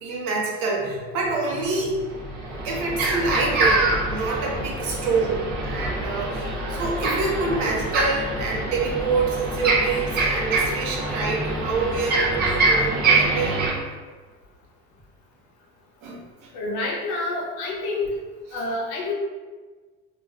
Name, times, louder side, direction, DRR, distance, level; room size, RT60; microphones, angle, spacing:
voice 1, 0.0-13.6 16.0-16.2, right 3 dB, 85° right, -2 dB, 0.8 m, -27 dB
sound 1, 1.6-1.7 2.1-13.7, right 2 dB, 35° right, 0.5 m, -25 dB
voice 2, 16.5-18.1 18.5-19.1, left 2 dB, 85° left, -2 dB, 0.8 m, -28 dB
3.2 x 2.5 x 2.2 m, 1.4 s
cardioid pair, 155°, 29 cm